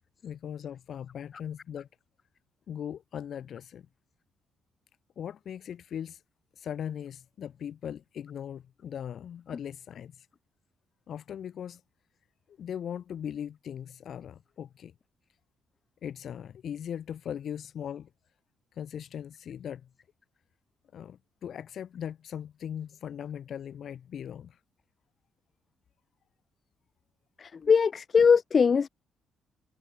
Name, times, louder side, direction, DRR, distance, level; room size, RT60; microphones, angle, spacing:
voice 1, 0.2-1.9 2.7-3.9 5.2-6.2 6.6-10.2 11.1-11.8 12.6-14.9 16.0-18.1 18.8-19.9 20.9-24.6, left 9 dB, 60° left, 7.4 m, -39 dB
voice 2, 27.4-28.9, left 6 dB, 40° left, 0.8 m, -21 dB
cardioid pair, 90°, 0 cm